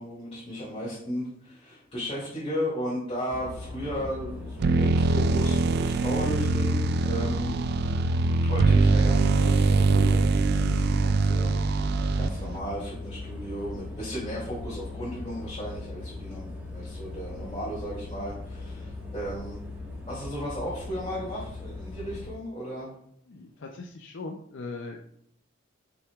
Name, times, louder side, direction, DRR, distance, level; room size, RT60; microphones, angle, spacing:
voice 1, 0.0-7.5 8.5-11.5 11.8-19.6 20.1-22.9, equal, 30° left, -10 dB, 2.5 m, -35 dB
sound 1, 3.3-22.3, left 3 dB, 10° right, 1.5 m, -39 dB
sound 2, 4.6-12.6, right 3 dB, 55° right, 0.3 m, -23 dB
voice 2, 23.3-25.0, left 3 dB, 60° left, 2 dB, 0.5 m, -39 dB
6.6 x 6.0 x 2.4 m, 0.71 s
head